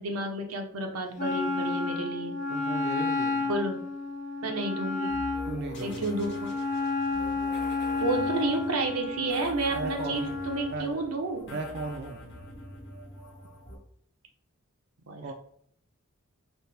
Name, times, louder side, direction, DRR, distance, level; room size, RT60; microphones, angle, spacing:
voice 1, 0.0-2.4 3.5-3.8 4.4-5.2 5.8-6.5 8.0-11.6 15.1-15.3, right 2 dB, 90° right, 3 dB, 0.7 m, -31 dB
Wind instrument woodwind instrument, 1.2-10.8, left 3 dB, 35° left, 0.7 m, -31 dB
voice 2, 2.5-3.5 5.4-6.0 9.7-10.4 10.7-11.0 11.5-12.2 15.2-15.3, right 2 dB, 50° right, 4 dB, 0.4 m, -36 dB
sound 1, 5.1-13.8, equal, 60° left, 1.0 m, -44 dB
4.1 x 2.1 x 3.3 m, 0.66 s
head